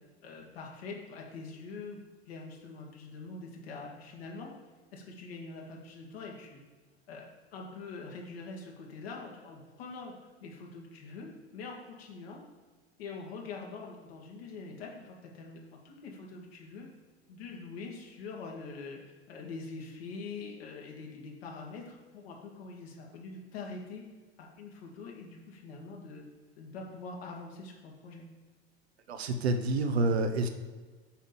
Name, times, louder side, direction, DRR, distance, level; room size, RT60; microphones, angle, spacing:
voice 1, 0.2-2.0 2.3-4.5 4.9-6.6 7.1-10.1 10.4-12.4 13.0-16.9 17.3-19.0 19.3-24.0 24.4-26.2 26.6-28.3, left 4 dB, 65° left, -1 dB, 2.2 m, -44 dB
voice 2, 29.1-30.5, right 2 dB, 75° right, 6 dB, 0.9 m, -28 dB
7.3 x 5.1 x 7.0 m, 1.4 s
figure-of-eight pair, 75°, 33 cm